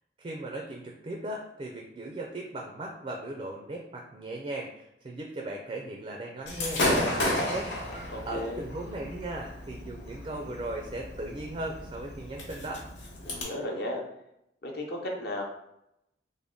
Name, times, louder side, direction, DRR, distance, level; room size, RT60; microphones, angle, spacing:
voice 1, 0.2-7.7 8.2-12.8, right 1 dB, 30° right, 1 dB, 0.4 m, -37 dB
Gunshot gunfire / Fireworks, 6.5-13.4, left 1 dB, 85° left, 1.1 m, -33 dB
voice 2, 8.1-8.6 13.2-14.0 14.6-15.4, left 1 dB, 60° left, 0 dB, 0.7 m, -34 dB
3.5 x 2.1 x 3.7 m, 0.81 s
head